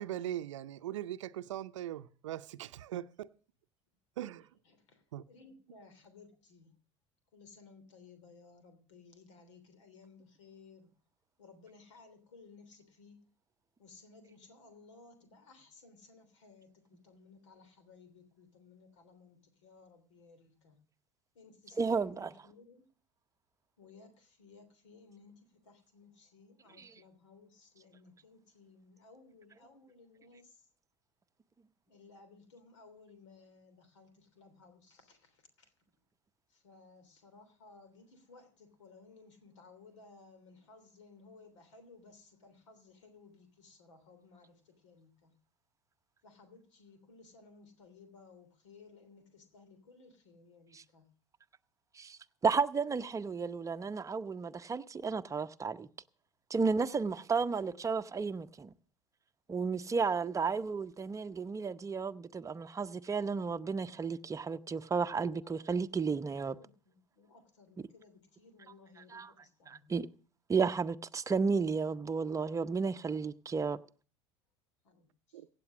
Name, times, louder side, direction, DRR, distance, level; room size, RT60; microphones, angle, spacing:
voice 1, 0.0-3.3 4.2-4.6 5.1-5.2 75.3-75.5, right 12 dB, 85° right, 0.6 m, -40 dB
voice 2, 4.6-6.7 7.3-10.9 11.4-13.2 13.8-20.8 21.3-22.9 23.8-30.7 31.9-35.7 36.5-45.3 46.2-51.1 59.7-60.7 65.1-69.9 74.8-75.4, left 4 dB, 85° left, 3.2 m, -59 dB
voice 3, 21.8-22.3 51.9-55.9 56.5-58.7 59.5-66.6 69.1-69.3 69.7-70.1 70.5-73.8, right 5 dB, 20° right, 0.8 m, -33 dB
16.5 x 8.5 x 6.1 m
hypercardioid pair, 80°, 15 cm